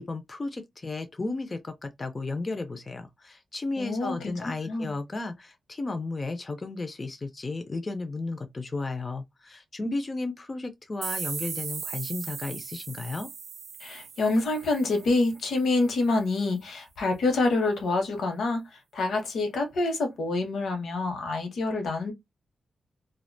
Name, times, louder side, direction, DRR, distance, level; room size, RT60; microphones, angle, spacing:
voice 1, 0.0-13.3, left 3 dB, 30° left, 0.3 m, -34 dB
voice 2, 3.8-4.9 13.8-18.6 18.9-22.1, left 2 dB, 85° left, 0.8 m, -27 dB
sound 1, 11.0-15.7, right 7 dB, 70° right, 0.3 m, -38 dB
2.3 x 2.1 x 2.5 m
wide cardioid pair, 135°, 0 cm